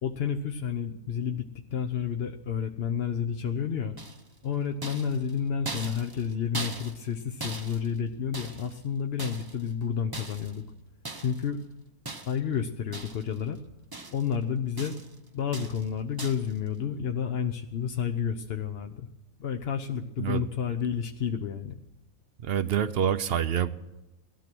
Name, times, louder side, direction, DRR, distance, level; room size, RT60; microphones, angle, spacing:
voice 1, 0.0-4.0 4.4-10.6 11.2-11.6 12.2-13.6 14.1-15.0 15.3-19.1 19.4-21.8, left 7 dB, 50° left, 5 dB, 0.8 m, -30 dB
sound 1, 4.0-4.4 4.8-7.1 7.4-8.8 9.2-9.7 10.1-10.6 11.0-11.5 12.1-12.5 12.9-13.4 13.7-14.4 14.8-15.2 15.5-15.9 16.2-16.5, right 3 dB, 20° right, 0.7 m, -40 dB
voice 2, 22.4-23.7, right 9 dB, 55° right, 13 dB, 0.7 m, -26 dB
18.0 x 13.0 x 6.1 m, 1.0 s
omnidirectional pair, 1.6 m